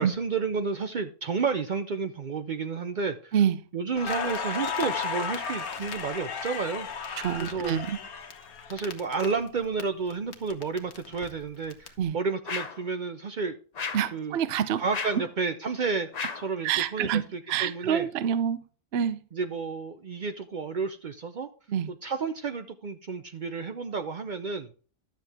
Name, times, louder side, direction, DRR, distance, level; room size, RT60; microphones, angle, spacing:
voice 1, 0.0-3.4 3.7-6.9 7.4-7.8 8.7-13.6 14.1-14.4 14.8-16.1 16.3-18.1 19.3-21.5 21.9-24.7, right 5 dB, 80° right, 0.4 m, -31 dB
Crackle, 4.0-9.8 10.1-11.9, left 6 dB, 65° left, 1.5 m, -34 dB
voice 2, 7.2-8.0 12.0-12.2 13.9-14.8 16.6-17.2 17.5-18.6 18.9-19.2 21.7-21.9, right 9 dB, 55° right, 0.7 m, -26 dB
sound 1, 12.4-12.9 13.7-14.2 14.9-15.3 16.1-16.5, left 5 dB, 45° left, 0.5 m, -34 dB
12.0 x 7.4 x 3.5 m
omnidirectional pair, 1.7 m